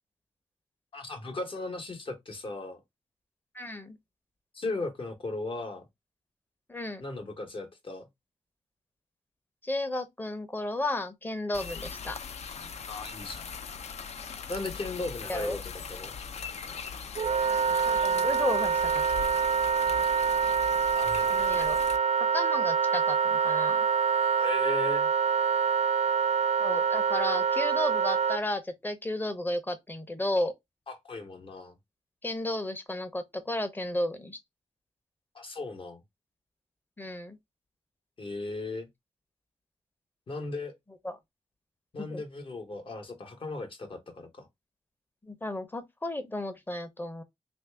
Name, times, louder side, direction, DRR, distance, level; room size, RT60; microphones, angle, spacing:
voice 1, 0.9-2.8 4.5-5.9 7.0-8.1 12.8-13.5 14.5-16.2 20.9-21.4 24.3-25.1 30.9-31.8 35.3-36.0 38.2-38.9 40.3-40.7 41.9-44.5, left 2 dB, 45° left, 0.9 m, -37 dB
voice 2, 3.5-4.0 6.7-7.0 9.6-12.2 15.3-15.6 17.9-19.0 21.3-21.8 22.3-23.9 26.6-30.5 32.2-34.4 37.0-37.4 41.0-41.2 42.0-42.2 45.2-47.2, left 1 dB, 15° left, 0.7 m, -33 dB
sound 1, 11.5-22.0, left 5 dB, 65° left, 0.5 m, -40 dB
Wind instrument woodwind instrument, 17.2-28.4, right 6 dB, 70° right, 0.4 m, -26 dB
3.2 x 2.6 x 3.4 m
wide cardioid pair, 115°, 12 cm